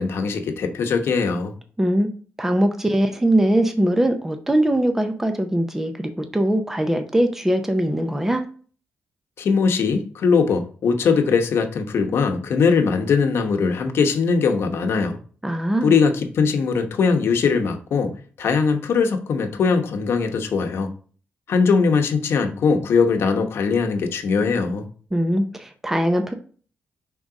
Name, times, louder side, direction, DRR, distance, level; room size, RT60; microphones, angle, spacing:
voice 1, 0.0-1.5 9.4-15.2 15.8-20.9 21.5-24.9, left 5 dB, 70° left, 4 dB, 0.9 m, -20 dB
voice 2, 1.8-2.1 2.4-8.4 15.4-16.0 25.1-26.3, right 1 dB, 10° right, 6 dB, 0.6 m, -21 dB
5.2 x 3.8 x 4.7 m, 0.42 s
wide cardioid pair, 140°, 4 cm